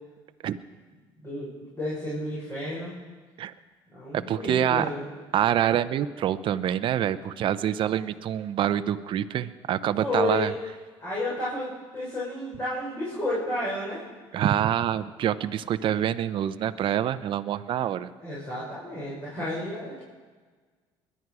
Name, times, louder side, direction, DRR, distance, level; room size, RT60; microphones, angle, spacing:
voice 1, 1.2-3.0 3.9-5.0 10.0-10.5 11.0-14.0 17.7-17.8 18.2-20.0, left 1 dB, 25° left, -8 dB, 6.2 m, -31 dB
voice 2, 4.1-4.8 5.3-10.5 14.3-18.1, right 10 dB, 55° right, 12 dB, 0.6 m, -26 dB
21.5 x 11.0 x 4.8 m, 1.4 s
supercardioid pair, 100°, 11 cm